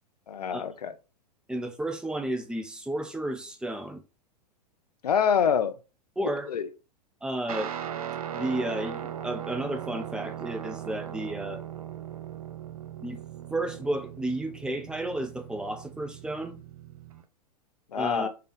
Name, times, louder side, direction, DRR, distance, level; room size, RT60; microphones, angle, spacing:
voice 1, 0.3-0.9 5.0-5.7 6.5-6.7 17.9-18.3, left 7 dB, 70° left, 0.5 m, -25 dB
voice 2, 1.5-4.0 6.2-6.5 7.2-7.7 8.3-11.6 13.0-13.2 13.5-16.6 17.9-18.3, right 1 dB, 5° right, 0.4 m, -32 dB
Guitar, 7.5-17.2, right 10 dB, 60° right, 0.5 m, -39 dB
4.6 x 2.3 x 3.2 m
figure-of-eight pair, 95°, 21 cm